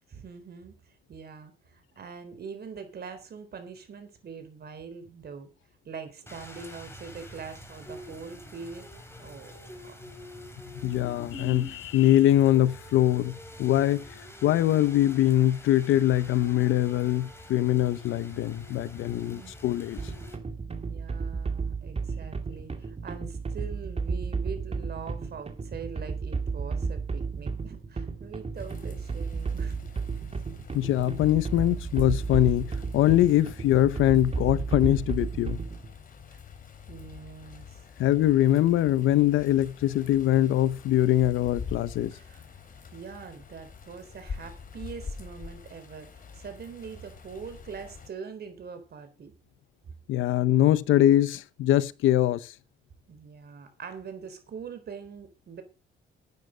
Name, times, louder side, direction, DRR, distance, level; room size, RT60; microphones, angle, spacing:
voice 1, 0.1-0.8 1.1-5.5 5.9-8.9 9.2-9.5 9.8-9.9 19.2-19.5 20.7-29.7 36.3-36.4 36.9-37.8 42.1-42.4 42.9-49.3 53.1-55.6, right 6 dB, 55° right, 3.9 m, -43 dB
Rain, 6.3-20.4, left 1 dB, 10° left, 3.9 m, -46 dB
voice 2, 10.8-14.1 14.4-20.0 30.7-35.6 38.0-42.1 50.1-52.5, left 13 dB, 85° left, 0.9 m, -23 dB
sound 1, 20.0-35.9, right 4 dB, 30° right, 2.2 m, -33 dB
sound 2, 28.6-48.1, left 5 dB, 45° left, 3.6 m, -45 dB
12.0 x 9.4 x 5.1 m
cardioid pair, 90°, 20 cm